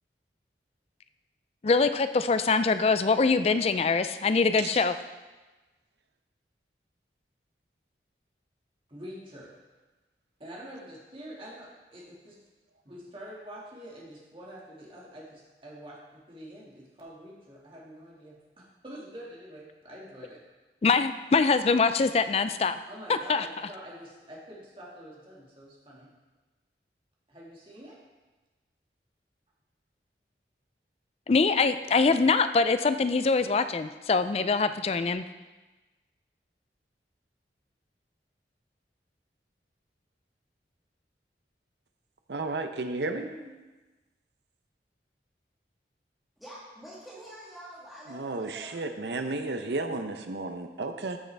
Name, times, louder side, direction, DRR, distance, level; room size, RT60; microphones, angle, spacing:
voice 1, 1.6-4.9 20.8-22.8 23.1-23.5 31.3-35.2, left 4 dB, 35° left, 11 dB, 0.3 m, -24 dB
voice 2, 8.9-9.5 10.4-12.4 12.8-20.4 22.9-26.1 27.3-28.0 33.4-33.5 34.4-34.8 43.0-43.5, equal, 30° right, -4 dB, 2.1 m, -46 dB
voice 3, 42.3-43.2 48.1-51.2, right 3 dB, 75° right, 7 dB, 0.7 m, -33 dB
voice 4, 46.4-48.8, equal, ahead, -8 dB, 1.6 m, -46 dB
14.0 x 6.5 x 3.4 m, 1.2 s
head